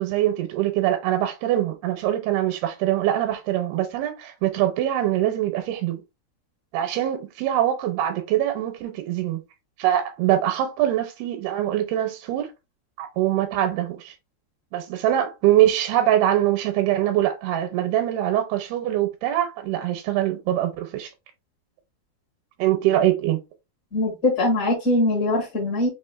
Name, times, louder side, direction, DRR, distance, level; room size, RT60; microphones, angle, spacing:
voice 1, 0.0-6.0 6.7-9.4 9.8-12.5 13.0-14.1 14.7-21.1 22.6-23.4, right 12 dB, 80° right, 2.6 m, -23 dB
voice 2, 23.9-25.9, left 1 dB, 45° left, 1.1 m, -22 dB
6.2 x 2.5 x 2.4 m
omnidirectional pair, 4.7 m